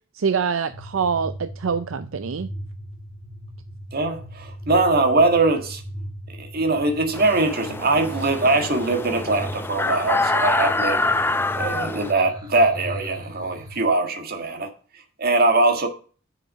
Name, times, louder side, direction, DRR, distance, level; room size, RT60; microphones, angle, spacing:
voice 1, 0.1-2.5, right 6 dB, 80° right, 0.5 m, -25 dB
sound 1, 0.7-13.8, equal, 20° right, 1.5 m, -38 dB
voice 2, 3.9-5.8 6.4-11.0 11.6-14.7 15.2-15.9, right 2 dB, 50° right, 1.7 m, -21 dB
sound 2, 7.1-12.1, left 2 dB, 10° left, 0.5 m, -25 dB
7.0 x 5.9 x 6.6 m
head